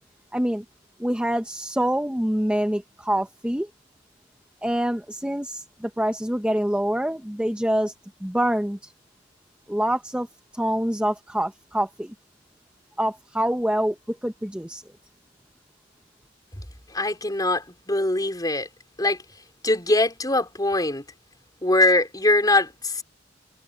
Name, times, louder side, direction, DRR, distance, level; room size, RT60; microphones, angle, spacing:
voice 1, 0.3-0.6 1.0-3.7 4.6-7.9 8.2-8.9 9.7-10.3 10.5-12.1 13.0-14.8, right 1 dB, 5° right, 0.9 m, -25 dB
voice 2, 16.9-18.7 19.0-19.2 19.6-21.0 21.6-23.0, left 2 dB, 20° left, 4.2 m, -22 dB
head